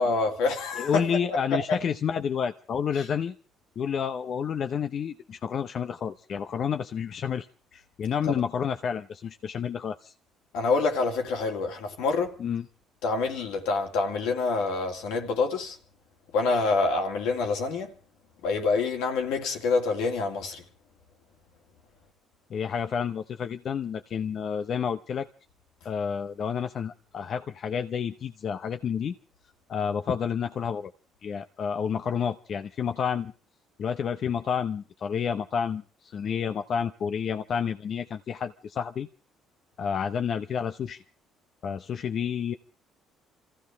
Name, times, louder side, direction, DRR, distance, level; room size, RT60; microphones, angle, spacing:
voice 1, 0.0-1.0 1.3-1.8 3.0-3.1 8.3-8.4 10.5-12.4 13.0-15.8 16.3-17.9 18.4-20.6, left 3 dB, 80° left, 2.3 m, -27 dB
voice 2, 0.8-3.3 3.8-7.5 7.7-10.1 12.4-12.7 22.5-25.3 25.8-29.1 29.7-30.9 31.2-33.3 33.8-39.1 39.8-41.0 41.6-42.5, left 7 dB, 55° left, 0.7 m, -30 dB
27.0 x 15.5 x 3.5 m
supercardioid pair, 70°, 0 cm